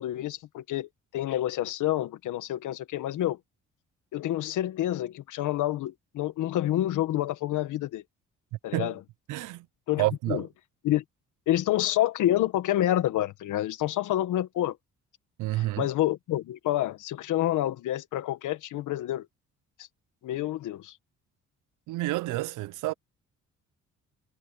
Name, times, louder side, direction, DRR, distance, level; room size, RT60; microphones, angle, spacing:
voice 1, 0.0-3.4 4.1-8.0 8.6-9.0 9.9-10.5 10.8-11.0 11.5-14.8 15.5-19.3 20.2-21.0, left 13 dB, 80° left, 1.4 m, -28 dB
voice 2, 9.3-9.6 10.0-10.5 15.4-15.8 21.9-22.9, right 18 dB, 90° right, 0.7 m, -29 dB
cardioid pair, 90°, 30 cm